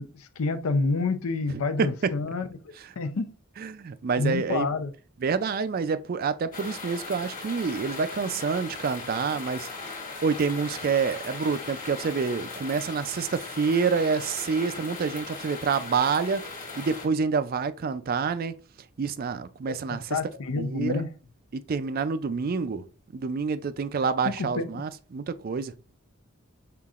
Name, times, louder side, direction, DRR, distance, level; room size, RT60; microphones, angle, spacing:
voice 1, 0.0-2.5 3.0-3.3 4.2-4.9 19.7-21.1 24.2-24.7, left 3 dB, 80° left, 0.5 m, -28 dB
voice 2, 1.5-2.1 3.6-4.7 5.2-9.9 10.2-16.4 16.8-18.5 19.0-20.2 20.6-21.0 21.5-22.8 23.1-25.7, right 5 dB, 45° right, 0.3 m, -27 dB
sound 1, 6.5-17.1, left 4 dB, 40° left, 1.4 m, -38 dB
5.6 x 3.7 x 2.4 m
head